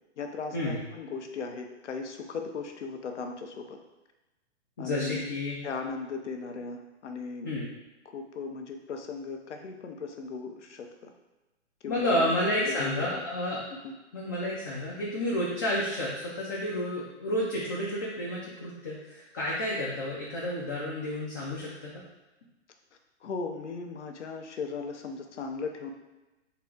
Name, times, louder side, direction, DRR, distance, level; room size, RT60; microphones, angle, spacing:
voice 1, 0.2-3.8 4.8-5.3 5.6-7.5 8.1-11.1 11.8-12.3 12.6-13.2 13.7-13.9 23.2-25.9, left 4 dB, 75° left, 4 dB, 0.7 m, -37 dB
voice 2, 4.8-5.6 7.4-7.7 11.9-13.6 14.1-21.9, left 1 dB, 20° left, -6 dB, 0.3 m, -30 dB
3.9 x 2.4 x 4.4 m, 1.1 s
hypercardioid pair, 130°, 35 cm